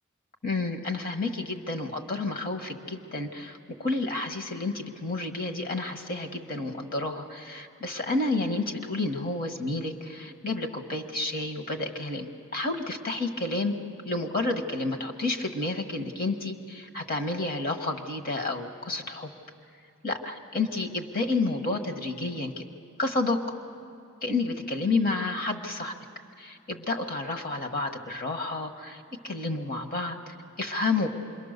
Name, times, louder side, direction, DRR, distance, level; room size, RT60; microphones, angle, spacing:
voice 1, 0.4-13.7 14.0-19.3 20.0-22.7 23.0-23.5 24.2-25.9 26.4-31.1, left 2 dB, 45° left, 6 dB, 1.6 m, -30 dB
27.0 x 22.5 x 6.7 m, 2.4 s
head